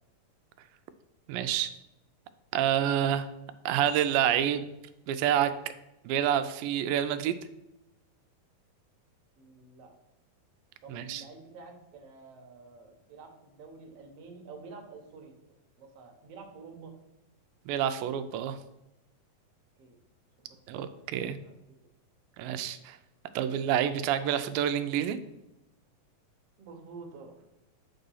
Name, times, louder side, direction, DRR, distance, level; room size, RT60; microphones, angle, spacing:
voice 1, 1.3-1.7 2.5-3.3 3.7-4.7 5.1-5.5 6.1-7.4 10.9-11.2 17.7-18.6 20.7-21.4 22.4-23.0 23.4-25.2, right 10 dB, 85° right, 10 dB, 2.3 m, -28 dB
voice 2, 9.4-9.9 10.8-15.3 15.8-16.9 19.8-20.0 20.4-21.5 21.8-21.9 26.6-27.4, right 4 dB, 60° right, 2 dB, 1.8 m, -49 dB
8.6 x 3.9 x 5.5 m, 0.92 s
omnidirectional pair, 4.0 m